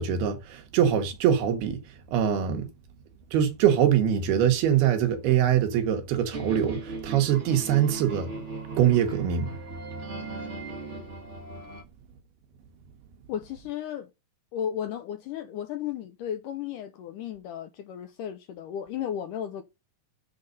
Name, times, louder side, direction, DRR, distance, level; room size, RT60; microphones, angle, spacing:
voice 1, 0.0-1.8 2.1-2.7 3.3-8.3 8.8-9.5, right 9 dB, 85° right, 3.4 m, -23 dB
sound 1, 6.3-11.8, right 3 dB, 50° right, 0.8 m, -37 dB
voice 2, 13.3-14.1 14.5-19.6, left 9 dB, 80° left, 2.0 m, -34 dB
7.8 x 4.1 x 6.3 m
omnidirectional pair, 4.4 m